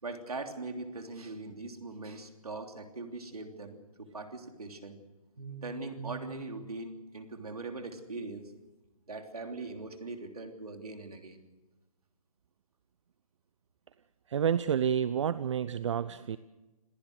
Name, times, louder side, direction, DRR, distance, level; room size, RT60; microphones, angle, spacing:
voice 1, 0.0-5.0 5.4-8.4 9.1-11.4, right 3 dB, 80° right, 5 dB, 3.3 m, -41 dB
voice 2, 14.3-16.4, right 8 dB, 55° right, 15 dB, 0.7 m, -29 dB
27.0 x 16.0 x 6.5 m, 1.1 s
figure-of-eight pair, 140°, 19 cm